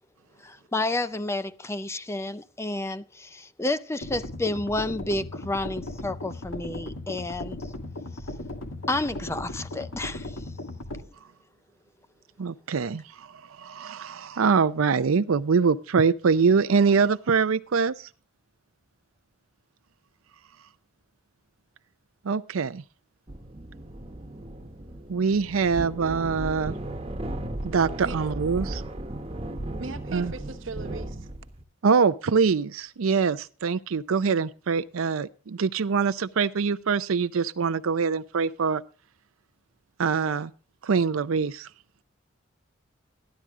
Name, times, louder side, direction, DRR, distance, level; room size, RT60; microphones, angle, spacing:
voice 1, 0.4-7.6 8.9-10.4, left 2 dB, 15° left, 0.4 m, -30 dB
sound 1, 4.0-11.0, left 1 dB, 80° left, 1.9 m, -37 dB
voice 2, 12.4-18.1 22.2-22.8 25.1-26.8 27.6-28.8 30.1-30.3 31.8-38.8 40.0-40.5 40.8-41.7, right 5 dB, 85° right, 0.5 m, -24 dB
sound 2, 23.3-31.6, right 1 dB, 25° right, 1.1 m, -36 dB
voice 3, 29.8-31.3, right 4 dB, 65° right, 1.0 m, -38 dB
13.0 x 11.5 x 3.6 m
head